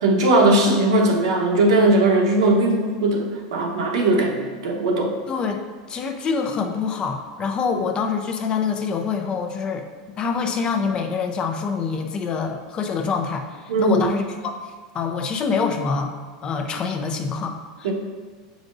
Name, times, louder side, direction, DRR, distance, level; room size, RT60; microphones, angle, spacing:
voice 1, 0.0-5.1 13.7-14.1 17.8-17.9, right 2 dB, 85° right, 0 dB, 1.1 m, -19 dB
voice 2, 5.3-5.6 5.9-9.8 10.2-14.5 14.9-16.1 16.4-17.9, left 5 dB, 30° left, 4 dB, 0.6 m, -25 dB
7.5 x 5.1 x 2.6 m, 1.5 s
supercardioid pair, 130°, 3 cm